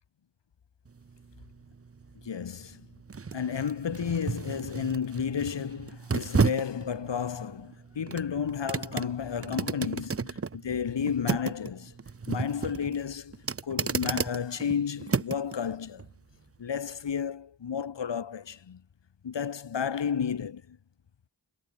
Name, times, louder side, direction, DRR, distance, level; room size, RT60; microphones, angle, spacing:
sound 1, 0.9-15.5 16.0-16.1, right 5 dB, 35° right, 0.7 m, -33 dB
voice 1, 2.2-2.9 3.3-11.9 12.3-13.3 13.6-16.1 16.6-18.8 19.2-20.8, left 7 dB, 80° left, 1.1 m, -32 dB
wide cardioid pair, 45°, 42 cm